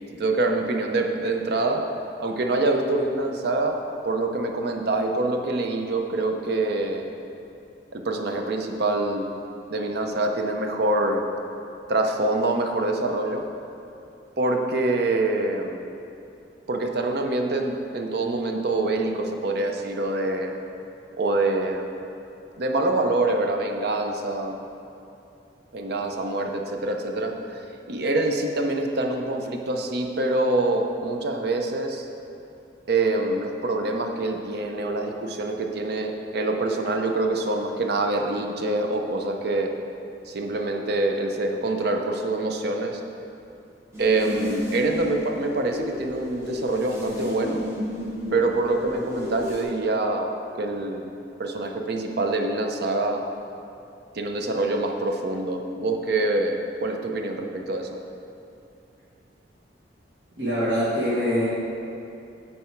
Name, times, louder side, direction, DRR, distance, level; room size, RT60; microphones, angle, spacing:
voice 1, 0.2-1.8 2.2-3.8 4.0-7.1 7.9-9.3 9.7-11.2 11.9-13.4 14.4-15.8 16.7-20.6 21.1-21.9 22.6-24.6 25.7-27.3 27.9-32.1 32.9-39.7 40.3-43.0 44.0-47.6 48.3-50.3 50.6-51.1 51.4-53.2 54.2-57.9, right 2 dB, 65° right, 3 dB, 0.6 m, -25 dB
sound 1, 43.9-49.6, left 1 dB, 15° right, 1.2 m, -33 dB
voice 2, 60.4-61.5, equal, 90° right, -11 dB, 1.6 m, -24 dB
9.4 x 4.2 x 4.5 m, 2.7 s
head